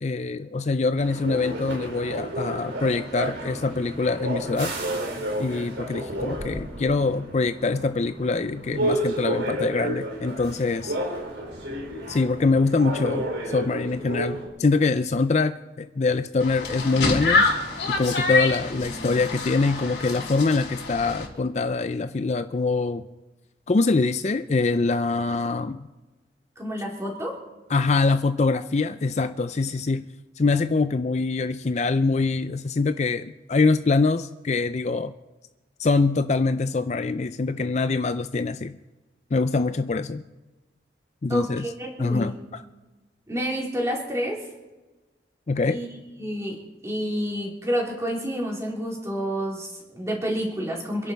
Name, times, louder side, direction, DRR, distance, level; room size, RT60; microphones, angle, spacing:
voice 1, 0.0-4.7 5.4-10.9 12.1-17.5 17.9-23.0 23.7-25.9 27.7-30.1 30.4-35.1 35.8-38.8 39.3-40.2 41.2-41.7 42.0-42.6 45.5-45.8, left 3 dB, 40° left, 11 dB, 0.4 m, -24 dB
sound 1, 1.0-14.5, right 1 dB, 85° right, 4.8 m, -31 dB
sound 2, 16.4-21.3, left 3 dB, 70° left, 3.8 m, -26 dB
voice 2, 26.6-27.4 41.3-42.4 43.3-44.4 45.6-45.9 46.2-51.1, equal, 15° right, -2 dB, 3.9 m, -29 dB
27.5 x 11.0 x 4.6 m, 1.1 s
head